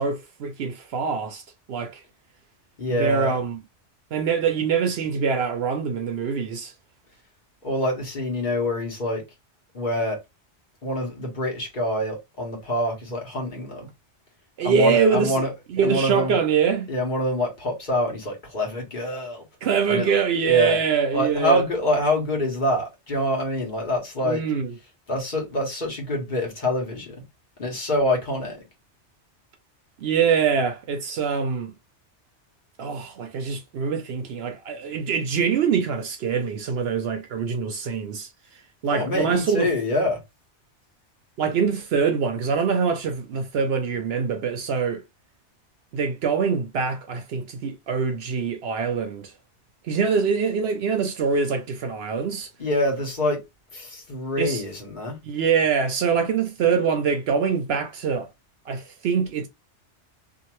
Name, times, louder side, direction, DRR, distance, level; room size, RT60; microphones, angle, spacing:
voice 1, 0.0-1.4 1.7-2.0 2.9-3.6 4.1-6.7 14.6-15.4 15.7-16.9 19.6-21.6 24.2-24.7 30.0-31.7 32.8-38.3 38.8-39.7 41.4-45.0 45.9-49.3 49.8-52.5 54.4-54.6 55.2-58.3 58.7-59.5, right 6 dB, 65° right, 0.7 m, -24 dB
voice 2, 2.8-3.4 7.6-9.2 9.7-10.2 10.8-13.9 14.6-16.4 16.9-19.4 19.9-20.2 20.4-20.8 21.1-24.4 25.1-27.2 27.6-28.7 38.9-40.2 52.6-53.4 53.7-55.2, left 1 dB, 45° left, 1.3 m, -26 dB
2.8 x 2.5 x 2.9 m
omnidirectional pair, 1.2 m